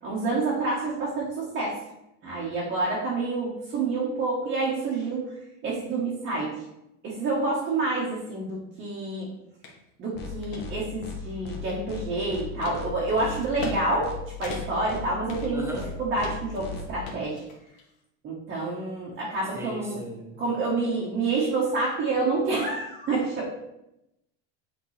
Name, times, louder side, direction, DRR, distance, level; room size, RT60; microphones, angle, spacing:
voice 1, 0.0-1.8 2.2-5.3 5.6-6.5 7.0-9.3 10.0-14.1 14.4-15.7 16.0-17.4 18.2-20.0 20.4-23.5, right 3 dB, 35° right, -5 dB, 1.3 m, -28 dB
sound 1, 9.6-9.8 10.2-10.6 11.2-12.1 12.6-12.8 13.4-13.8 14.0-14.1 14.4-14.9 15.3-15.9 16.2-16.6 17.1-17.9, left 3 dB, 85° left, 1.5 m, -40 dB
sound 2, 10.1-10.3 10.6-10.7 11.0-11.2 11.4-11.6 11.9-12.0 12.3-12.4 12.7-12.9 13.1-13.7 14.0-14.2 14.4-14.6 14.9-15.0 15.3-15.4 15.7-15.9 16.1-16.3 16.6-16.8, left 4 dB, 35° left, 1.1 m, -37 dB
voice 2, 15.5-15.9 19.5-20.4, equal, 10° right, 0 dB, 0.9 m, -37 dB
8.1 x 3.7 x 3.3 m, 0.87 s
cardioid pair, 165°, 31 cm